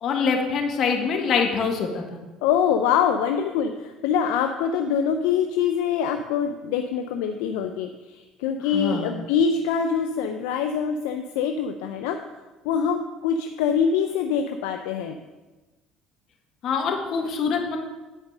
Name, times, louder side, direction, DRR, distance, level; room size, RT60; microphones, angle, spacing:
voice 1, 0.0-2.2 8.7-9.1 16.6-17.8, left 5 dB, 55° left, 3 dB, 1.6 m, -24 dB
voice 2, 2.4-12.2 12.6-15.2, left 7 dB, 75° left, 6 dB, 0.5 m, -24 dB
9.8 x 5.2 x 6.5 m, 1.2 s
hypercardioid pair, 65°, 0 cm